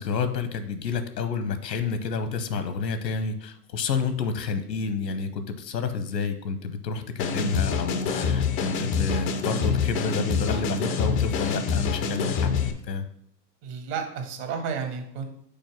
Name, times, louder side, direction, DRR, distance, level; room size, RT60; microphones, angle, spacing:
voice 1, 0.0-13.0, left 5 dB, 90° left, 10 dB, 0.9 m, -29 dB
sound 1, 7.2-12.7, left 5 dB, 20° left, 0.3 m, -26 dB
voice 2, 13.6-15.2, right 6 dB, 50° right, 4 dB, 1.5 m, -32 dB
5.3 x 4.3 x 5.9 m, 0.71 s
hypercardioid pair, 105°, 49 cm